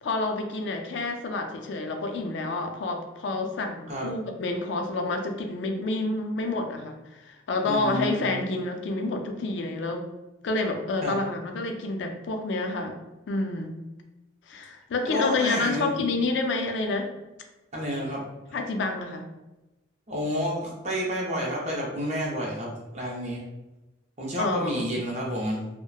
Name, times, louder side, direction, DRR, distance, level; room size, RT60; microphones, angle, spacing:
voice 1, 0.0-10.1 10.4-13.0 13.3-13.8 14.5-17.1 18.5-19.3 24.4-24.9, left 3 dB, 75° left, 4 dB, 0.4 m, -29 dB
voice 2, 7.6-8.3 11.0-11.2 15.0-15.9 17.7-18.2 20.1-23.4 24.2-25.7, equal, 35° right, -3 dB, 0.6 m, -30 dB
2.8 x 2.1 x 2.2 m, 1.0 s
head